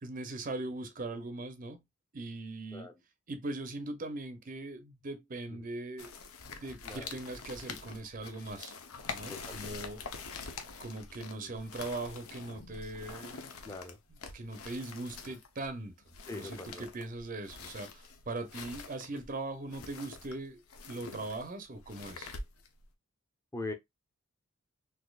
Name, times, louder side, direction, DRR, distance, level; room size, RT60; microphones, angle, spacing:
voice 1, 0.0-1.8 2.1-2.9 3.3-6.1 6.6-8.8 9.1-10.0 10.8-13.6 14.3-15.9 16.3-22.3, right 2 dB, 40° right, 0.6 m, -40 dB
sound 1, 6.0-22.9, left 4 dB, 85° left, 0.8 m, -46 dB
voice 2, 6.8-7.1 9.3-9.7 11.4-11.5 13.6-14.0 16.3-16.9 19.1-19.2 23.5-23.7, left 2 dB, 15° left, 0.6 m, -42 dB
4.0 x 2.7 x 2.3 m
head